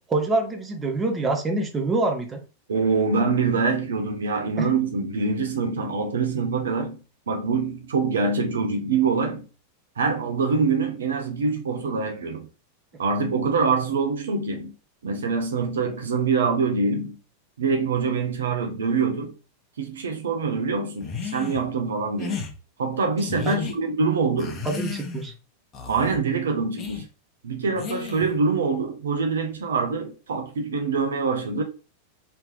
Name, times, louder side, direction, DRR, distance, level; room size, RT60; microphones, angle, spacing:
voice 1, 0.1-2.4 4.6-4.7 23.5-23.7 24.6-25.3, right 2 dB, 15° right, 0.8 m, -25 dB
voice 2, 2.7-7.0 7.3-9.4 10.0-12.5 13.0-14.7 15.0-17.2 17.6-19.3 19.8-22.4 22.8-24.6 25.9-27.1 27.4-31.6, right 4 dB, 65° right, 0.6 m, -24 dB
sound 1, 21.0-21.6 22.2-22.5 23.2-23.7 24.4-25.3 25.7-26.2 26.8-27.0 27.8-28.4, left 6 dB, 30° left, 0.9 m, -33 dB
3.2 x 2.9 x 3.2 m
figure-of-eight pair, 90°, 0 cm